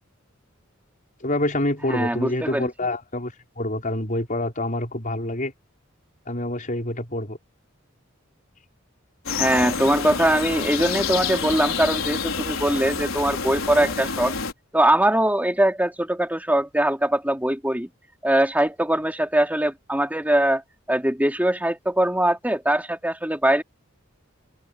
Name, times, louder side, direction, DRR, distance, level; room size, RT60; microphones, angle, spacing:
voice 1, 1.2-5.5 6.3-7.4, left 1 dB, 40° left, 5.4 m, -27 dB
voice 2, 1.9-2.7 9.3-14.3 14.7-17.9 18.2-20.6 20.9-23.6, right 1 dB, 10° right, 3.9 m, -22 dB
sound 1, 9.3-14.5, left 5 dB, 85° left, 5.1 m, -28 dB
head